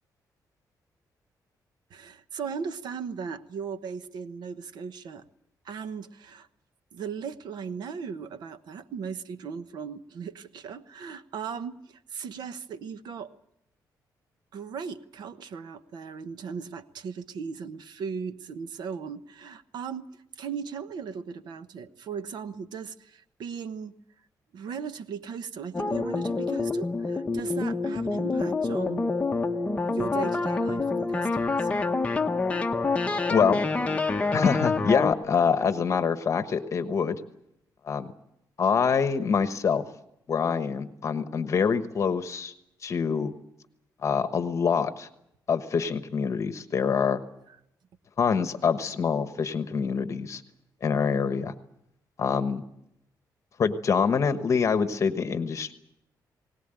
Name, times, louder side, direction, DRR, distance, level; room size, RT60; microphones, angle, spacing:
voice 1, 1.9-5.2 5.6-6.5 6.9-13.3 14.5-20.1 20.4-23.9 24.5-29.1 29.8-31.7 47.5-47.6, right 6 dB, 75° right, 12 dB, 1.1 m, -37 dB
sound 1, 25.7-35.1, left 3 dB, 20° left, 1.0 m, -27 dB
voice 2, 33.3-33.6 34.3-37.2 37.8-38.1 38.6-39.9 40.3-42.5 42.8-43.3 44.0-45.1 45.5-47.2 48.2-50.4 50.8-51.5 52.2-52.6 53.6-55.7, left 6 dB, 45° left, 10 dB, 1.2 m, -25 dB
20.5 x 18.5 x 9.0 m, 0.79 s
cardioid pair, 145°, 7 cm